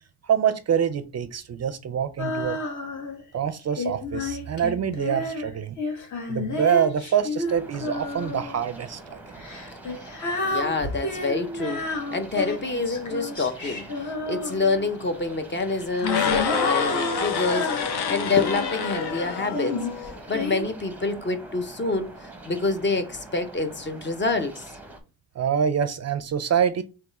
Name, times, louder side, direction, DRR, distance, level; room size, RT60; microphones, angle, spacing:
voice 1, 0.2-2.6 3.3-5.8 6.3-9.2 25.4-26.8, right 8 dB, 45° right, 0.4 m, -25 dB
Female singing, 2.2-3.2 3.8-8.6 9.4-14.9 15.7-18.8 19.5-20.6, left 2 dB, 50° left, 1.2 m, -31 dB
sound 1, 7.5-25.0, right 2 dB, 5° right, 0.7 m, -44 dB
voice 2, 10.4-11.9 12.1-24.7, left 3 dB, 30° left, 0.6 m, -27 dB
sound 2, 16.0-20.2, left 6 dB, 75° left, 0.9 m, -27 dB
3.5 x 3.2 x 4.0 m
wide cardioid pair, 140°, 39 cm